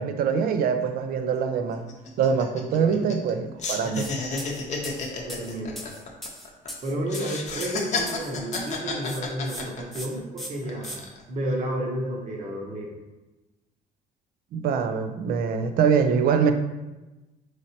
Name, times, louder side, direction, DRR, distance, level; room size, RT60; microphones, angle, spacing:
voice 1, 0.0-1.8 2.2-4.1 14.5-16.5, right 6 dB, 60° right, 8 dB, 0.4 m, -24 dB
sound 1, 0.8-0.9 1.2-1.4 1.7-3.3 3.6-6.7 7.1-10.2 10.6-11.2, left 4 dB, 45° left, 0.7 m, -32 dB
voice 2, 2.7-3.1 5.2-5.9 6.8-13.0, right 1 dB, 45° right, -1 dB, 0.9 m, -31 dB
sound 2, 3.9-4.1 4.4-8.8 9.0-9.6 9.9-10.1 10.4-11.0, equal, ahead, 0.6 m, -39 dB
3.9 x 3.2 x 2.7 m, 1.1 s
cardioid pair, 110°, 17 cm